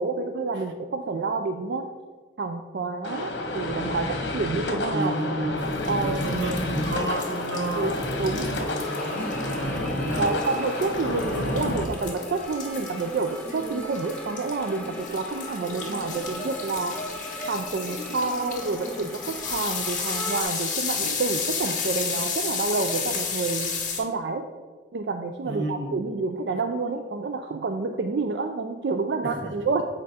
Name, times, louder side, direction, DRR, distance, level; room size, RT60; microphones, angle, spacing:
voice 1, 0.0-1.8 2.4-5.2 5.9-6.2 7.7-8.5 10.2-17.0 17.5-23.7 24.0-24.4 24.9-29.8, right 3 dB, 65° right, 6 dB, 0.4 m, -28 dB
sound 1, 3.0-11.8, left 1 dB, 85° left, 1.1 m, -29 dB
voice 2, 4.9-10.3 25.4-26.0 29.2-29.5, right 2 dB, 90° right, 4 dB, 1.1 m, -31 dB
sound 2, 5.6-24.0, left 6 dB, 45° left, 1.5 m, -33 dB
sound 3, 8.8-20.4, equal, 5° left, 1.0 m, -37 dB
7.5 x 4.7 x 4.2 m, 1.4 s
head